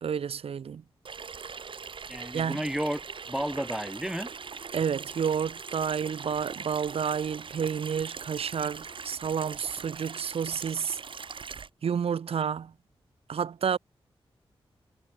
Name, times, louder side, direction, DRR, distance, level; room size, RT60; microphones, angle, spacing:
voice 1, 0.0-0.8 2.3-2.6 4.7-11.0 11.8-12.7 13.3-13.8, right 7 dB, 80° right, 1.4 m, -30 dB
Water tap faucet / Sink (filling or washing), 1.0-11.7, right 5 dB, 60° right, 3.0 m, -41 dB
voice 2, 2.1-4.3, right 1 dB, 5° right, 3.3 m, -32 dB
wide cardioid pair, 95°, 10 cm